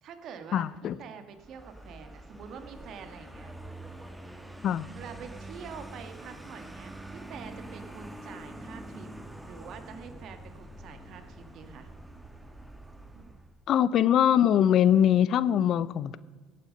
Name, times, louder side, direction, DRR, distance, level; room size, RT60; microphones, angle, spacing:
voice 1, 0.0-3.5 4.9-9.1 9.4-11.9 13.1-13.3, right 6 dB, 60° right, 8 dB, 1.7 m, -46 dB
voice 2, 0.5-1.0 4.6-4.9 13.7-16.2, left 10 dB, 60° left, 18 dB, 0.6 m, -22 dB
Vehicle, 1.3-13.6, right 1 dB, 10° right, 1.5 m, -45 dB
17.0 x 8.8 x 5.2 m, 1.4 s
supercardioid pair, 80°, 0 cm